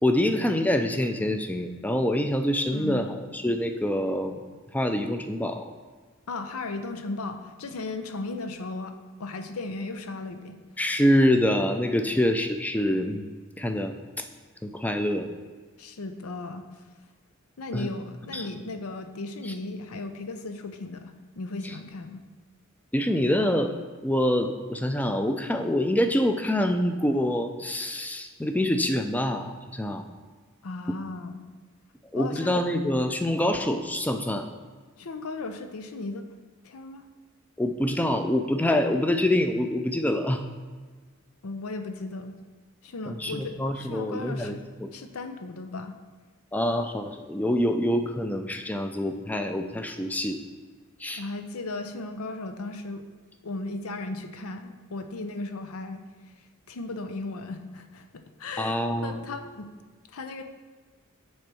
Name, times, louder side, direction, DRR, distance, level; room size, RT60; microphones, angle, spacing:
voice 1, 0.0-4.4 4.7-5.7 10.8-13.3 13.6-13.9 14.6-15.3 17.7-17.9 18.3-18.5 19.4-19.5 21.6-21.7 22.9-23.7 24.0-30.1 32.1-34.5 37.6-40.4 43.1-44.5 44.8-44.9 46.5-50.4 51.0-51.2 58.6-59.3, left 1 dB, 5° left, 6 dB, 0.4 m, -26 dB
voice 2, 2.7-3.2 6.3-10.6 12.1-12.2 15.8-16.7 17.6-22.2 30.6-31.4 32.1-32.6 35.0-36.3 36.6-37.0 41.4-42.4 42.8-44.6 44.9-46.0 51.2-53.0 53.4-56.0 56.7-59.7 60.1-60.4, left 2 dB, 85° left, 8 dB, 0.6 m, -36 dB
6.3 x 4.4 x 6.0 m, 1.5 s
head